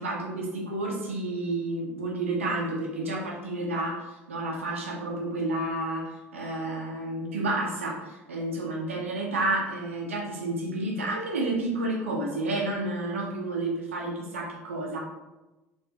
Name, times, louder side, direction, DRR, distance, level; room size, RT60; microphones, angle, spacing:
voice 1, 0.0-15.0, right 2 dB, 85° right, -1 dB, 0.7 m, -30 dB
4.3 x 2.6 x 2.8 m, 1.1 s
hypercardioid pair, 65°, 7 cm